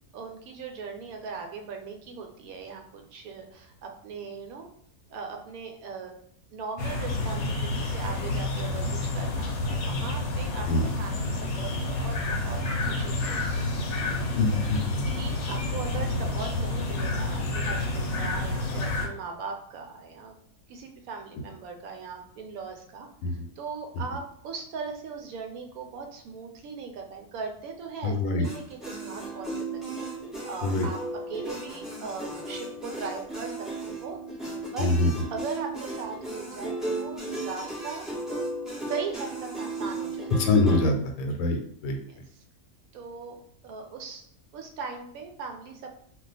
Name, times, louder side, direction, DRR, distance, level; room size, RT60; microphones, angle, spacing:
voice 1, 0.1-4.7 5.1-6.1 6.5-8.9 9.1-10.7 11.0-13.7 14.0-14.1 15.0-20.3 20.7-29.8 30.4-31.0 31.3-34.2 34.7-34.9 35.3-38.1 38.9-40.3 42.1-42.2 42.9-44.2 44.5-46.0, right 5 dB, 75° right, 3 dB, 1.0 m, -39 dB
sound 1, 6.8-19.1, left 2 dB, 60° left, 0.8 m, -29 dB
voice 2, 14.4-14.8 23.2-23.5 28.0-28.5 30.6-30.9 34.8-35.1 40.4-42.0, left 3 dB, 85° left, 4 dB, 1.1 m, -24 dB
sound 2, 28.4-40.9, right 2 dB, ahead, 0.3 m, -35 dB
2.3 x 2.3 x 3.9 m, 0.64 s
omnidirectional pair, 1.6 m